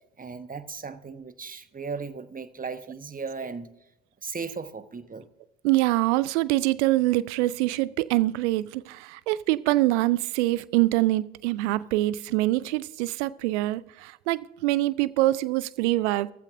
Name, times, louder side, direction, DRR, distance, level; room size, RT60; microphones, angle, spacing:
voice 1, 0.2-3.7 4.2-5.3, right 5 dB, 25° right, 1.1 m, -36 dB
voice 2, 5.6-16.3, right 17 dB, 75° right, 0.5 m, -24 dB
16.5 x 14.5 x 2.6 m
figure-of-eight pair, 40°, 36 cm